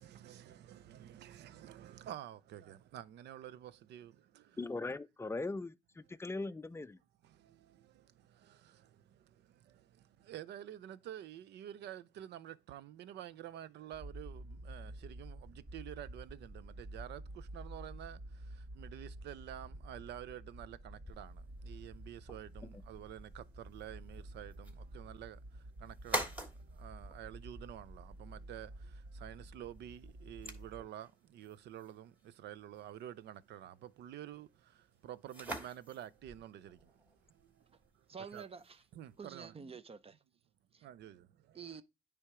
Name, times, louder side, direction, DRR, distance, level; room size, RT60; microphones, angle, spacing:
voice 1, 0.0-4.6 4.9-5.0 7.2-38.5 38.9-39.5 40.8-41.8, right 11 dB, 75° right, 0.5 m, -50 dB
voice 2, 4.6-7.0 22.6-22.7, left 3 dB, 15° left, 0.4 m, -40 dB
sound 1, 13.9-30.8, right 1 dB, 55° right, 3.1 m, -50 dB
sound 2, 21.0-39.5, right 2 dB, 10° right, 2.6 m, -48 dB
voice 3, 38.1-38.8 39.2-40.2 40.7-40.9 41.5-41.8, right 6 dB, 35° right, 0.7 m, -48 dB
9.7 x 3.5 x 4.8 m
cardioid pair, 80°, 18 cm